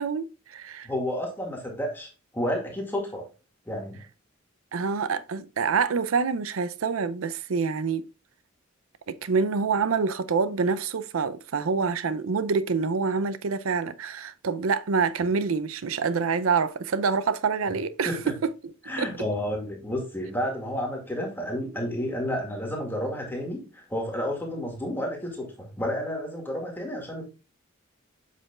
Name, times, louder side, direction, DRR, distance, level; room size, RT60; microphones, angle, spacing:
voice 1, 0.0-0.9 4.7-8.1 9.1-18.1 18.4-18.5 19.0-19.1, right 5 dB, 80° right, 0.5 m, -26 dB
voice 2, 0.8-3.3 3.7-4.0 18.1-18.2 18.9-27.2, equal, 10° left, 2.1 m, -31 dB
7.7 x 6.8 x 2.4 m
head